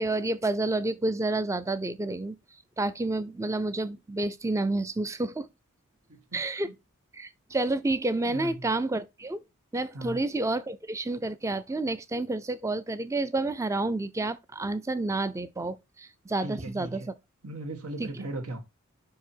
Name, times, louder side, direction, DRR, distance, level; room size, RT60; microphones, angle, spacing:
voice 1, 0.0-2.4 2.8-5.5 6.3-6.7 7.1-9.4 9.7-17.1 18.0-18.1, right 2 dB, 15° right, 0.4 m, -29 dB
voice 2, 16.4-17.1 17.4-18.6, right 2 dB, 85° right, 1.7 m, -37 dB
5.5 x 4.8 x 4.4 m
head